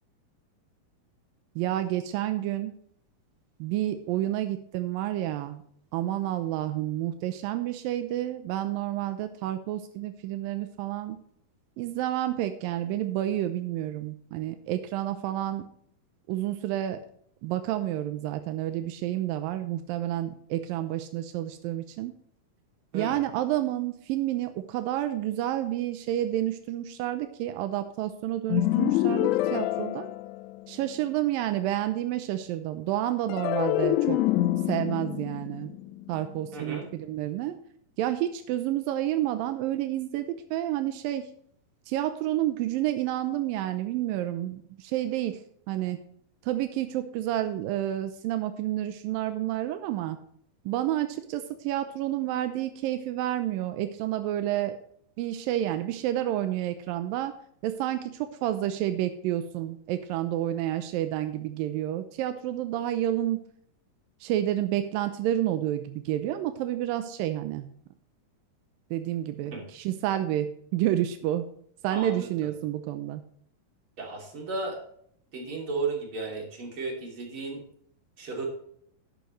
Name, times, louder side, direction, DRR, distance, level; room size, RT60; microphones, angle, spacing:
voice 1, 1.6-2.7 3.6-5.6 5.9-11.2 11.8-15.7 16.3-17.0 17.4-22.1 22.9-30.1 30.7-34.2 34.7-35.7 36.1-37.6 38.0-41.3 41.9-45.4 45.7-46.0 46.4-50.2 50.7-54.8 55.2-57.4 57.6-63.4 64.2-67.7 68.9-71.5 71.8-73.2, right 13 dB, 90° right, 9 dB, 2.5 m, -29 dB
sound 1, 28.5-30.9 33.3-36.6, left 14 dB, 85° left, 1.8 m, -27 dB
voice 2, 36.5-36.9 69.5-69.6 71.9-72.3 74.0-74.8 75.3-77.6 78.2-78.5, right 3 dB, 40° right, -1 dB, 3.6 m, -34 dB
11.5 x 10.5 x 3.2 m, 0.65 s
omnidirectional pair, 4.0 m